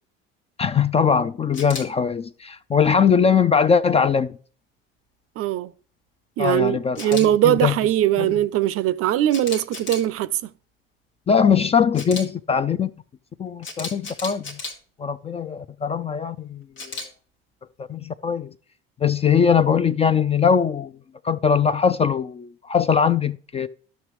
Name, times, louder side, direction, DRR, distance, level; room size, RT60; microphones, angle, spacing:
voice 1, 0.6-4.3 6.4-7.7 8.2-8.3 11.3-12.9 13.4-14.6 15.0-17.0 17.8-18.5 19.0-20.9 21.2-23.7, left 6 dB, 20° left, 0.3 m, -21 dB
Camera, 1.5-1.8 7.0-7.3 9.3-10.1 11.9-12.2 13.6-14.7 16.8-17.1, left 3 dB, 85° left, 1.4 m, -33 dB
voice 2, 5.4-5.7 6.4-10.4, right 13 dB, 50° right, 0.5 m, -21 dB
11.5 x 6.0 x 3.0 m
hypercardioid pair, 65°, 29 cm